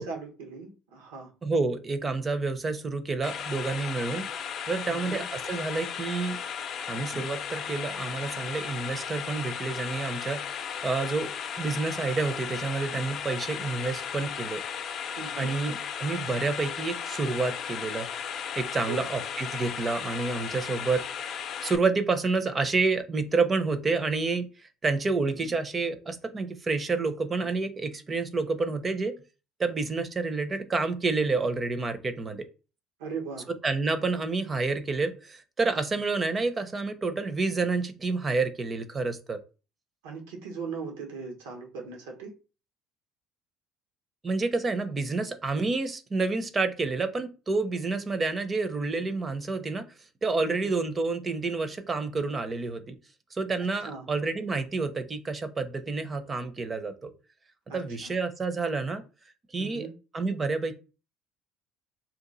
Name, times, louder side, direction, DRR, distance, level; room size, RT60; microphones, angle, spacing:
voice 1, 0.0-1.3 4.9-5.2 15.2-15.6 18.8-19.0 33.0-33.5 40.0-42.3 50.4-50.5 53.8-54.1 57.7-58.1 59.6-59.9, right 5 dB, 85° right, 1.1 m, -39 dB
voice 2, 1.4-4.3 4.7-6.4 6.9-10.4 10.8-11.3 11.6-14.6 15.4-18.1 18.6-21.0 21.6-29.1 29.6-32.5 33.6-39.4 44.2-49.8 50.2-52.9 53.3-57.1 57.7-59.0 59.5-59.9 60.1-60.7, right 3 dB, 30° right, 0.7 m, -29 dB
sound 1, 3.2-21.8, left 7 dB, 55° left, 0.5 m, -35 dB
2.8 x 2.5 x 3.9 m
hypercardioid pair, 70°, 0 cm